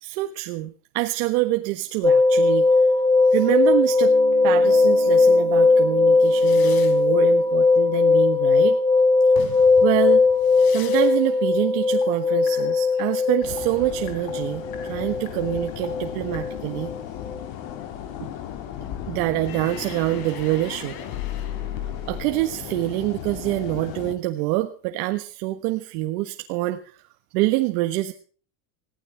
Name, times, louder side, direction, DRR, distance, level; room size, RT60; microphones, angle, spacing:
voice 1, 0.0-2.6 3.3-4.1 4.4-8.8 9.4-10.2 10.7-16.9 19.1-20.9 22.1-27.0 27.3-28.1, right 18 dB, 75° right, 5 dB, 1.5 m, -26 dB
sound 1, 2.0-17.0 17.2-17.4, left 3 dB, 10° left, 1.1 m, -19 dB
sound 2, 4.1-9.0 9.3-11.3 11.5-17.7 19.3-22.2, left 10 dB, 85° left, 3.7 m, -39 dB
sound 3, 13.4-24.2, left 10 dB, 65° left, 3.0 m, -36 dB
21.0 x 15.5 x 3.5 m, 0.41 s
cardioid pair, 150°, 44 cm